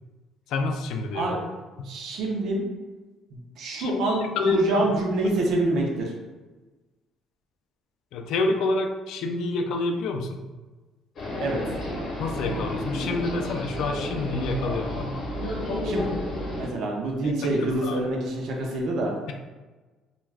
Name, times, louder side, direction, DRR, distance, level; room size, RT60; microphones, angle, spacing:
voice 1, 0.5-1.3 3.8-4.8 8.1-10.4 12.2-15.1 17.2-18.0, left 2 dB, 70° left, 5 dB, 0.3 m, -28 dB
voice 2, 1.8-2.6 3.3-6.1 11.4-11.6 15.8-16.1 16.6-19.1, right 2 dB, 60° right, -1 dB, 0.6 m, -26 dB
sound 1, 11.2-16.7, left 1 dB, 50° left, 0.8 m, -31 dB
2.3 x 2.2 x 3.3 m, 1.2 s
cardioid pair, 150°, 0 cm